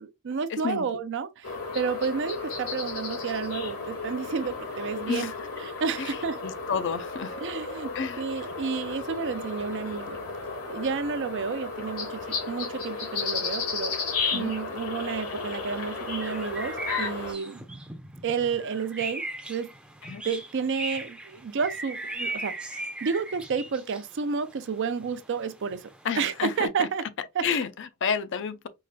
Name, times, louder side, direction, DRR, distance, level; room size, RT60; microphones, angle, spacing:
voice 1, 0.0-5.3 5.6-6.4 7.4-10.2 10.7-13.9 14.3-17.6 18.2-19.7 20.2-25.9 26.2-27.0 27.3-27.5, right 5 dB, 55° right, 0.4 m, -31 dB
sound 1, 1.4-17.3, left 4 dB, 80° left, 1.5 m, -34 dB
voice 2, 6.4-7.4 7.9-8.2 14.3-14.5 20.1-20.2 26.0-26.9 27.4-28.7, left 6 dB, 55° left, 0.5 m, -30 dB
sound 2, 15.2-26.6, right 2 dB, 5° right, 0.5 m, -39 dB
4.8 x 2.4 x 2.2 m
head